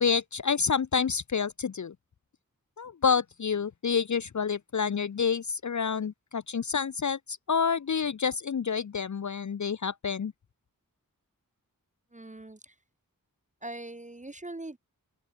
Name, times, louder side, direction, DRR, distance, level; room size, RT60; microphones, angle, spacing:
voice 1, 0.0-1.9 2.8-10.3, left 6 dB, 55° left, 0.5 m, -28 dB
voice 2, 12.1-12.7 13.6-14.8, right 2 dB, 20° right, 0.7 m, -41 dB
wide cardioid pair, 50°, 35 cm